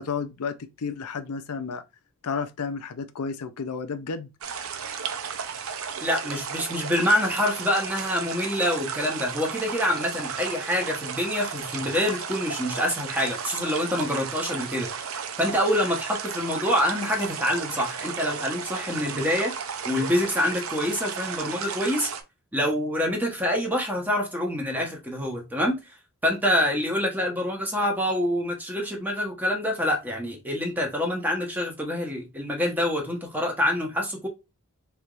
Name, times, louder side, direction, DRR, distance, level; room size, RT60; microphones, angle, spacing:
voice 1, 0.0-1.8 2.2-4.3, left 5 dB, 80° left, 0.5 m, -32 dB
sound 1, 4.4-22.2, right 6 dB, 65° right, 0.6 m, -34 dB
voice 2, 6.0-14.9 15.4-19.5 19.9-22.1 22.5-25.8 26.2-34.3, left 1 dB, 10° right, 1.1 m, -26 dB
4.4 x 3.4 x 2.5 m
head